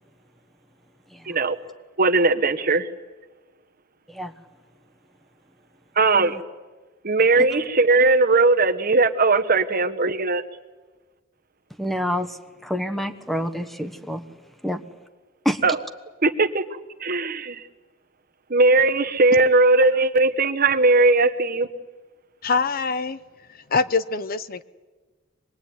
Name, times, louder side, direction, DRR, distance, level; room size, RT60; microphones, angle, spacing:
voice 1, 1.3-1.6 2.0-2.9 6.0-6.4 7.0-10.4 15.6-15.8 16.2-16.6 17.0-17.6 18.5-21.7, right 3 dB, 50° right, 8 dB, 1.2 m, -19 dB
voice 2, 11.8-12.4 12.6-14.2 14.6-14.8 15.4-15.6, equal, ahead, 8 dB, 1.3 m, -27 dB
voice 3, 22.4-23.2 23.5-24.6, left 4 dB, 50° left, 14 dB, 0.8 m, -24 dB
25.0 x 21.0 x 9.5 m, 1.3 s
head